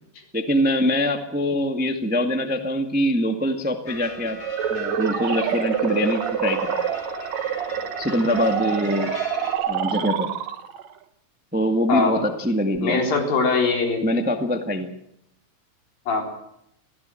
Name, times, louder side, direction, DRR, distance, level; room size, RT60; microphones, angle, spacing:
voice 1, 0.3-4.4 4.7-6.8 8.0-9.2 9.7-10.3 11.5-13.0 14.0-14.9, equal, 10° right, 5 dB, 0.4 m, -23 dB
sound 1, 3.8-9.6, left 3 dB, 45° left, 7.1 m, -37 dB
sound 2, 4.4-10.9, right 9 dB, 65° right, 2.0 m, -27 dB
voice 2, 11.9-12.2 12.8-14.1 16.1-16.2, left 4 dB, 90° left, 2 dB, 5.6 m, -21 dB
22.5 x 16.5 x 7.8 m, 0.77 s
omnidirectional pair, 4.0 m